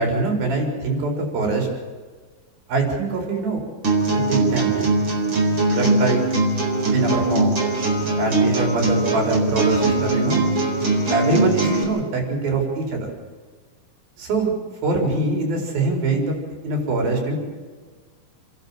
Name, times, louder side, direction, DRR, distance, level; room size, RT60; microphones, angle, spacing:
voice 1, 0.0-1.7 2.7-3.6 4.1-4.9 5.7-6.2 6.9-7.6 8.2-10.5 11.1-13.1 14.2-14.5 14.8-16.3 16.6-17.4, right 3 dB, 70° right, 1 dB, 6.2 m, -23 dB
sound 1, 3.8-11.8, right 2 dB, 30° right, 4.7 m, -21 dB
28.5 x 12.0 x 8.8 m, 1.4 s
omnidirectional pair, 4.4 m